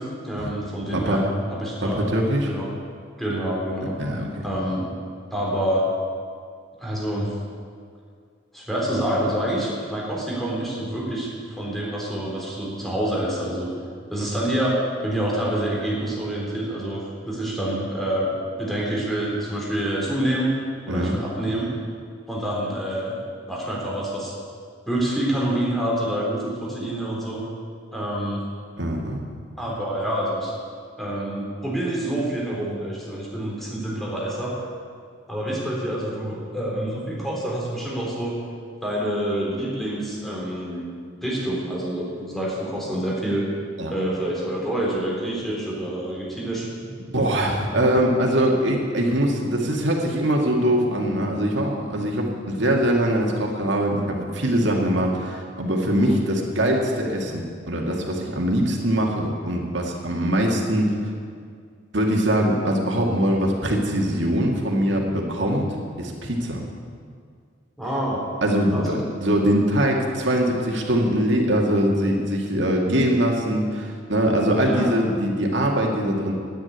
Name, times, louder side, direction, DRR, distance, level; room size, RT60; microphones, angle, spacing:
voice 1, 0.0-2.0 2.4-2.7 3.2-3.9 4.4-4.9 5.3-5.8 6.8-7.3 8.5-13.7 14.1-18.3 18.6-20.5 20.9-21.7 22.3-23.2 23.5-24.3 24.9-27.4 27.9-28.4 29.6-30.5 31.0-34.5 35.3-38.3 38.8-40.8 41.2-43.5 43.9-47.1 55.9-56.2 67.8-68.2 68.7-68.9 74.5-75.0, right 1 dB, ahead, -5 dB, 3.6 m, -27 dB
voice 2, 0.9-1.3 1.8-2.5 4.0-4.5 20.9-21.2 28.8-29.2 43.8-43.9 47.1-60.9 61.9-65.7 66.0-66.6 68.4-76.3, equal, 65° right, 0 dB, 2.2 m, -22 dB
10.5 x 10.0 x 9.4 m, 2.1 s
head